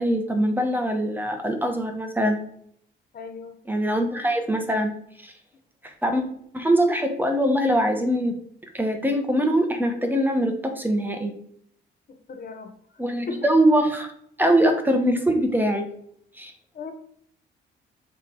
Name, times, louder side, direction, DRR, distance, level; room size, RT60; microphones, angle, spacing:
voice 1, 0.0-2.4 3.7-4.9 5.2-5.3 5.8-6.2 6.5-8.3 8.7-11.3 13.0-14.1 14.4-15.9 16.4-16.5, right 1 dB, 10° right, 4 dB, 1.2 m, -22 dB
voice 2, 3.1-3.6 12.1-13.0 13.3-13.5 16.7-16.9, left 4 dB, 50° left, 5 dB, 1.2 m, -37 dB
7.3 x 3.5 x 4.7 m, 0.65 s
cardioid pair, 90°, 20 cm